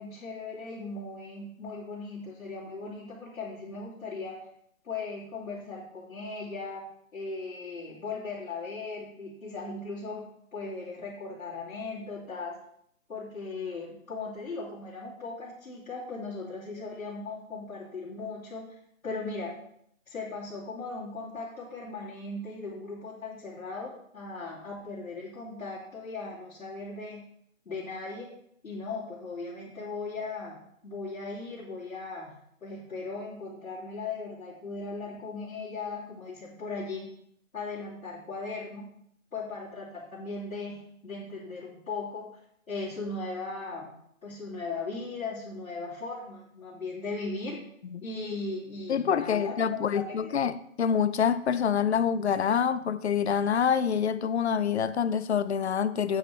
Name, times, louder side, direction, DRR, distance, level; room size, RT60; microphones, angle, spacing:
voice 1, 0.0-4.5 4.8-10.3 10.5-12.6 13.1-18.6 19.0-19.5 20.1-27.2 27.6-28.3 28.6-32.3 32.6-37.1 37.5-38.9 39.3-42.3 42.7-43.9 44.2-47.6 48.0-50.3, left 3 dB, 75° left, 3.0 m, -38 dB
voice 2, 48.9-56.2, left 7 dB, 55° left, 0.6 m, -26 dB
8.6 x 8.6 x 3.3 m
hypercardioid pair, 165°, 41 cm